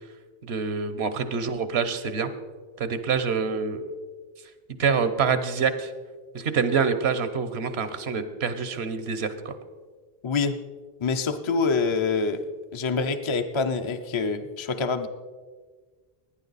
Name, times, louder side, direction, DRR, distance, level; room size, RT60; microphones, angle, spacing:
voice 1, 0.4-2.3 2.8-3.9 4.8-5.9 6.3-9.6, right 6 dB, 85° right, 11 dB, 1.2 m, -26 dB
voice 2, 10.2-10.5 11.0-12.4 12.7-15.1, left 4 dB, 35° left, 7 dB, 0.5 m, -26 dB
17.5 x 9.8 x 4.1 m, 1.5 s
omnidirectional pair, 1.0 m